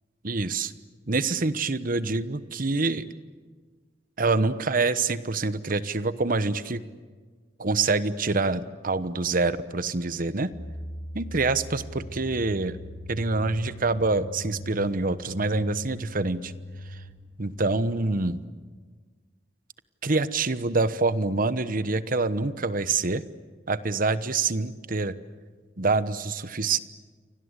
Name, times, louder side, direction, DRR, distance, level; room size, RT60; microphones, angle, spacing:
voice 1, 0.2-0.7 1.1-3.1 4.2-6.8 7.6-10.5 11.1-12.8 13.1-16.5 17.4-18.4 20.0-23.2 23.7-25.1 25.8-26.8, right 3 dB, 50° right, 14 dB, 1.1 m, -26 dB
sound 1, 10.5-18.3, left 1 dB, 35° left, 3.5 m, -41 dB
29.5 x 24.5 x 8.2 m, 1.5 s
head